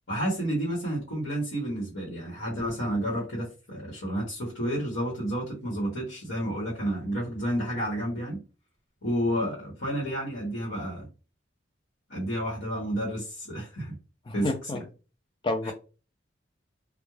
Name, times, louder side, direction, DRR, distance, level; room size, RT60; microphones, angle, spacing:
voice 1, 0.1-8.4 9.0-11.1 12.1-14.0 14.3-14.8 15.6-15.7, equal, 75° left, -4 dB, 1.1 m, -30 dB
voice 2, 14.3-14.8 15.4-15.7, left 2 dB, 25° left, 6 dB, 0.4 m, -29 dB
2.3 x 2.2 x 3.1 m, 0.33 s
head